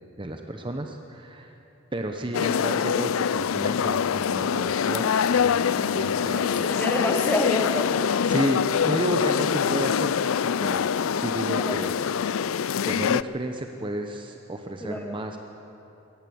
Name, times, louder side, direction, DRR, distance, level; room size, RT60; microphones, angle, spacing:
voice 1, 0.2-1.6 1.9-6.8 8.3-10.2 10.6-10.9 11.1-11.9 12.9-15.4, right 1 dB, 25° right, 4 dB, 0.9 m, -32 dB
sound 1, 2.3-13.2, left 7 dB, 85° left, 0.4 m, -24 dB
voice 2, 6.3-7.9 11.6-11.9 14.8-15.1, left 1 dB, 10° left, 4 dB, 1.8 m, -28 dB
22.5 x 18.0 x 7.9 m, 2.9 s
head